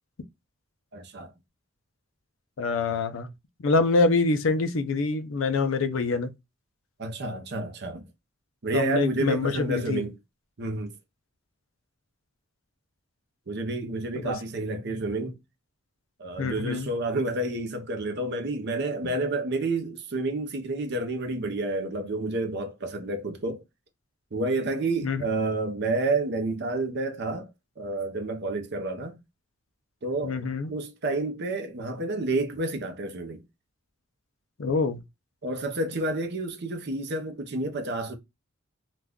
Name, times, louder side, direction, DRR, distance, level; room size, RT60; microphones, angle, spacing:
voice 1, 0.9-1.3 7.0-8.1 8.6-10.2 10.6-10.9 13.5-15.3 16.2-23.6 24.3-27.5 27.8-29.2 30.0-30.4 30.7-33.4 35.4-38.2, right 2 dB, 55° right, 0.6 m, -29 dB
voice 2, 2.6-3.3 3.6-6.3 8.7-10.0 14.2-14.3 16.4-16.9 25.0-25.2 30.2-30.7 34.6-35.0, left 3 dB, 70° left, 0.5 m, -25 dB
2.4 x 2.3 x 3.5 m
head